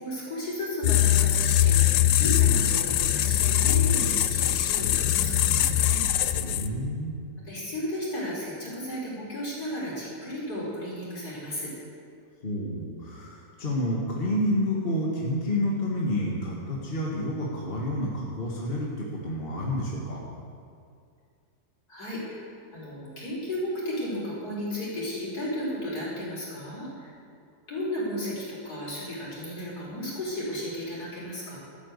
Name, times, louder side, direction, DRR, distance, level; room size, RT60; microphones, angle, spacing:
voice 1, 0.0-6.0 7.5-11.7 21.9-22.4 22.7-27.1 27.7-31.6, equal, 65° left, -6 dB, 5.2 m, -34 dB
sound 1, 0.8-6.9, left 11 dB, 85° left, 1.2 m, -22 dB
voice 2, 6.4-7.1 12.4-20.2, left 1 dB, 35° left, -3 dB, 1.9 m, -29 dB
13.0 x 9.4 x 8.2 m, 2.3 s
omnidirectional pair, 1.8 m